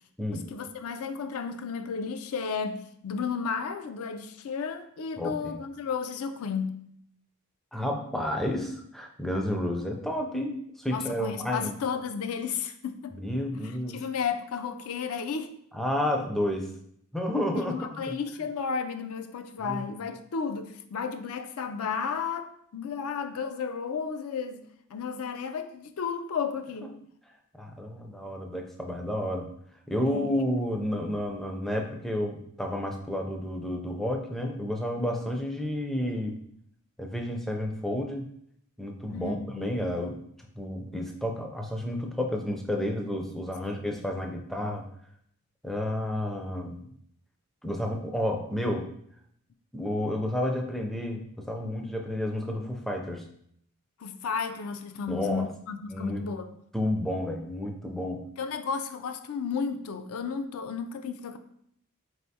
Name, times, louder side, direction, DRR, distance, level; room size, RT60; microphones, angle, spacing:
voice 1, 0.3-6.8 10.9-13.2 13.9-15.5 17.6-24.6 24.9-26.9 30.1-30.3 39.1-39.7 43.6-43.8 54.0-56.5 58.4-61.4, left 6 dB, 75° left, 9 dB, 0.4 m, -33 dB
voice 2, 5.2-5.6 7.7-11.7 13.1-14.0 15.7-16.7 17.1-18.2 19.6-19.8 27.5-29.5 29.9-36.4 37.0-38.3 38.8-40.2 40.6-44.9 45.6-46.8 47.6-48.9 49.7-53.2 55.1-55.5 55.9-56.2 56.7-58.2, left 1 dB, ahead, 1 dB, 0.4 m, -31 dB
4.2 x 3.3 x 2.7 m, 0.69 s
head